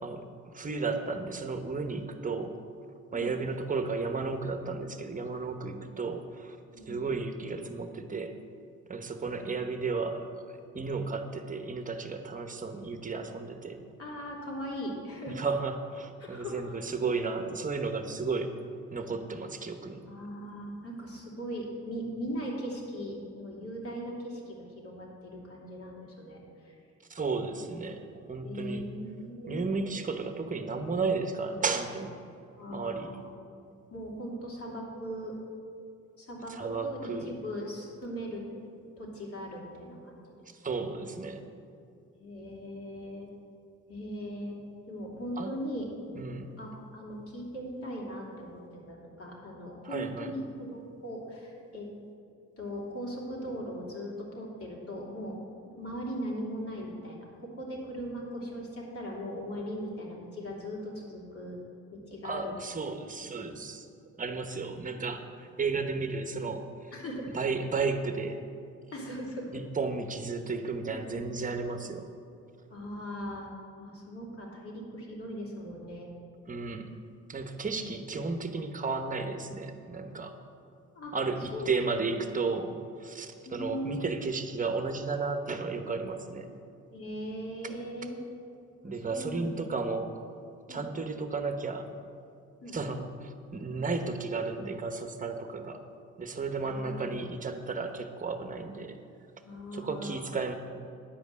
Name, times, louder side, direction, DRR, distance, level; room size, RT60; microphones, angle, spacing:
voice 1, 0.0-2.6 3.1-6.6 6.9-8.3 8.9-13.8 15.3-18.6 18.9-20.0 27.1-28.8 29.5-32.1 32.7-33.1 36.5-37.3 40.6-41.4 45.4-45.5 46.1-46.5 49.8-50.3 62.2-63.9 64.2-66.9 67.3-68.4 69.5-72.1 76.5-76.9 77.3-80.4 81.1-86.5 88.8-90.2 90.7-91.9 92.7-95.8 96.2-99.0 99.7-100.5, right 4 dB, 25° right, 7 dB, 1.0 m, -33 dB
voice 2, 5.5-5.8 6.7-7.1 9.1-9.7 14.0-15.4 16.2-16.6 20.1-26.4 26.6-26.7 28.4-29.7 32.5-33.2 33.9-35.4 36.2-38.4 39.0-40.2 42.1-43.3 43.9-44.6 44.9-45.9 46.6-51.9 52.6-55.3 55.6-61.6 61.9-62.5 66.9-67.3 68.9-69.5 71.0-71.5 72.7-76.1 77.6-77.9 80.9-81.1 81.5-82.0 83.4-84.1 86.9-88.2 88.8-89.5 90.7-90.9 92.6-92.8 96.6-97.1 99.4-100.4, equal, 50° left, -3 dB, 3.0 m, -39 dB
10.5 x 5.2 x 8.3 m, 2.5 s
cardioid pair, 90°, 30 cm